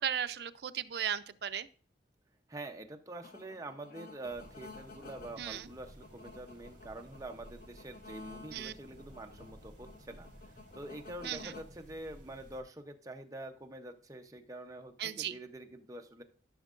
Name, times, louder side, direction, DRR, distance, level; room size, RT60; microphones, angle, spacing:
voice 1, 0.0-1.7 5.4-5.7 8.5-8.7 11.2-11.5 15.0-15.4, right 9 dB, 60° right, 12 dB, 0.4 m, -36 dB
voice 2, 2.5-10.3 10.7-16.2, right 2 dB, 20° right, 4 dB, 0.7 m, -46 dB
sound 1, 3.2-11.6, left 3 dB, 55° left, 0.8 m, -53 dB
sound 2, 4.2-12.6, right 1 dB, 40° right, 2.4 m, -56 dB
14.0 x 6.4 x 2.5 m, 0.40 s
head